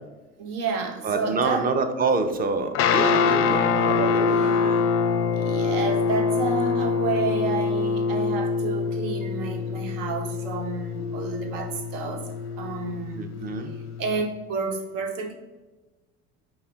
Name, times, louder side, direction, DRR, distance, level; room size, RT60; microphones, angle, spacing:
voice 1, 0.4-1.7 3.4-3.6 4.4-4.5 5.3-12.3 12.6-13.2 13.6-15.3, right 4 dB, 75° right, 4 dB, 0.8 m, -30 dB
voice 2, 1.0-4.9 13.2-13.8, right 4 dB, 25° right, 8 dB, 0.5 m, -27 dB
Guitar, 2.7-14.2, left 5 dB, 40° left, 0.4 m, -25 dB
5.4 x 2.2 x 3.5 m, 1.2 s
hypercardioid pair, 70°, 37 cm